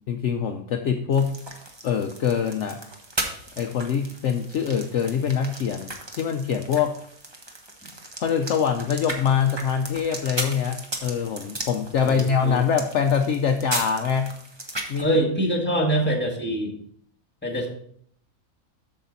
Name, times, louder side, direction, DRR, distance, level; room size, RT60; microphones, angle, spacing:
voice 1, 0.1-1.3 1.8-2.8 3.6-6.9 8.2-14.3 14.9-15.1 15.7-15.9, left 7 dB, 65° left, 4 dB, 0.9 m, -24 dB
sound 1, 1.1-15.0, right 2 dB, 20° right, 1.0 m, -36 dB
voice 2, 12.0-12.6 15.0-16.7 17.4-17.7, right 1 dB, 10° left, 1 dB, 1.6 m, -24 dB
8.2 x 6.6 x 4.0 m, 0.63 s
omnidirectional pair, 1.5 m